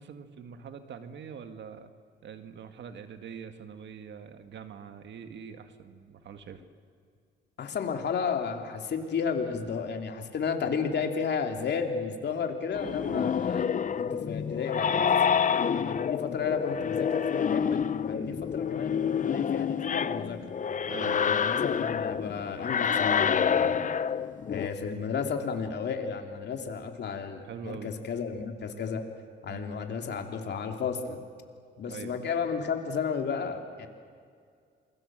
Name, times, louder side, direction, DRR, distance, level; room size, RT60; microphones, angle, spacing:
voice 1, 0.0-1.9 2.2-6.6 13.0-13.3 18.1-18.4 20.9-21.3 27.1-27.9 29.5-29.7 31.9-32.2, right 7 dB, 65° right, 8 dB, 1.8 m, -44 dB
voice 2, 7.6-13.7 14.0-15.4 15.7-20.5 21.0-23.8 24.5-29.0 29.4-31.2 31.8-33.9, left 6 dB, 60° left, 4 dB, 3.0 m, -33 dB
sound 1, 12.7-24.7, left 7 dB, 40° left, 0.8 m, -28 dB
28.0 x 22.0 x 7.6 m, 2.2 s
cardioid pair, 90°, 20 cm